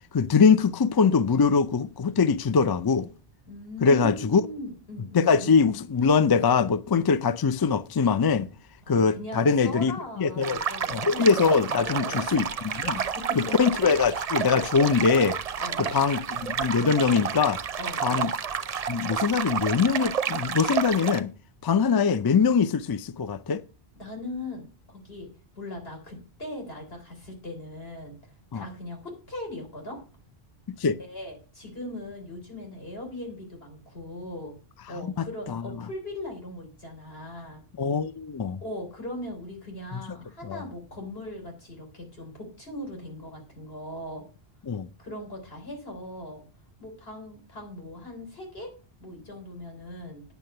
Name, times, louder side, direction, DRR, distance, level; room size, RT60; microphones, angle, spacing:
voice 1, 0.1-3.1 3.8-4.4 5.1-8.5 8.9-9.9 10.2-10.6 10.9-13.0 13.4-15.4 15.8-17.6 18.0-18.3 18.9-21.3 21.6-23.6 28.5-28.7 30.7-31.0 35.0-35.6 37.8-38.6 39.9-40.0 40.5-40.6 44.7-44.9, left 5 dB, 40° left, 0.3 m, -23 dB
voice 2, 3.5-5.5 8.9-11.3 11.8-12.5 12.9-13.7 14.3-14.4 15.6-16.0 17.8-18.3 24.0-25.3 25.6-28.2 28.5-30.0 31.0-34.5 34.9-37.6 38.6-44.3 45.0-46.4 46.8-48.7 49.0-50.2, left 1 dB, 70° left, 4.0 m, -39 dB
sound 1, 10.4-21.2, right 7 dB, 45° right, 0.6 m, -30 dB
9.2 x 6.6 x 6.6 m
omnidirectional pair, 1.1 m